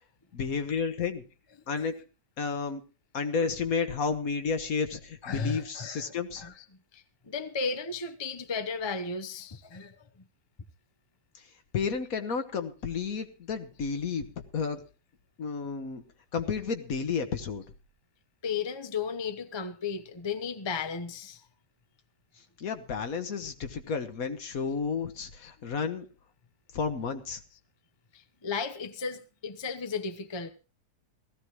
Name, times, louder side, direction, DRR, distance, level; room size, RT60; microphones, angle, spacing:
voice 1, 0.3-1.2 1.7-1.9 2.4-2.8 3.1-6.4 11.7-14.3 14.5-14.8 15.4-16.0 16.3-17.6 22.6-26.0 26.7-27.4, left 5 dB, 60° left, 1.5 m, -31 dB
voice 2, 5.2-6.7 6.9-9.9 18.4-21.4 25.4-25.5 28.1-30.5, left 5 dB, 25° left, 0.6 m, -35 dB
17.5 x 15.0 x 3.1 m
omnidirectional pair, 1.8 m